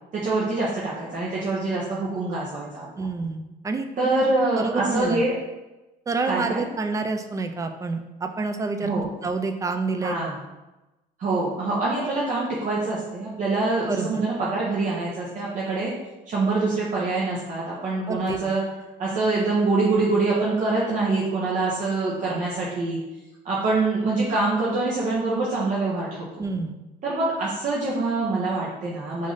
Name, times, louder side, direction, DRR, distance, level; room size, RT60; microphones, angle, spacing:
voice 1, 0.1-3.0 4.0-5.3 6.2-6.6 8.8-9.1 10.0-10.4 11.2-15.9 16.3-18.6 19.0-23.0 23.4-26.3 27.0-29.3, right 3 dB, 45° right, -6 dB, 0.7 m, -25 dB
voice 2, 3.0-4.2 4.5-5.2 6.1-10.3 13.9-14.1 18.1-18.5 26.4-26.8, right 3 dB, 20° right, 6 dB, 0.3 m, -28 dB
3.1 x 2.6 x 3.8 m, 1.0 s
cardioid pair, 110°, 17 cm